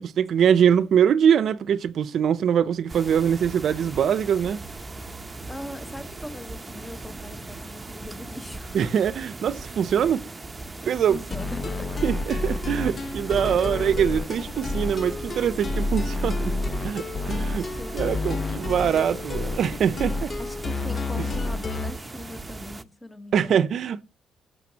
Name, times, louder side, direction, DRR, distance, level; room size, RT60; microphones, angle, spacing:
voice 1, 0.0-4.6 8.7-10.2 10.9-11.2 12.0-16.6 16.8-17.7 17.9-20.3 21.2-21.3 23.3-24.0, right 8 dB, 65° right, 0.7 m, -23 dB
sound 1, 2.9-22.8, right 2 dB, 20° right, 0.8 m, -39 dB
voice 2, 5.5-8.8 11.1-11.9 17.3-18.3 20.4-23.6, left 1 dB, 10° left, 1.3 m, -41 dB
sound 2, 11.3-22.0, left 2 dB, 35° left, 0.9 m, -30 dB
15.5 x 6.8 x 2.9 m
cardioid pair, 90°, 0 cm